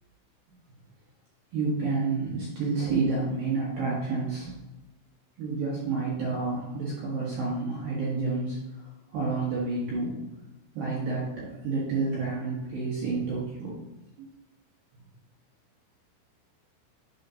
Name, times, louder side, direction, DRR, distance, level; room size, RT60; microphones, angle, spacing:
voice 1, 1.5-4.5 5.4-8.8 9.1-10.2 10.7-13.8 14.2-14.3, right 3 dB, 75° right, -7 dB, 2.1 m, -29 dB
9.8 x 5.2 x 2.8 m, 0.99 s
omnidirectional pair, 6.0 m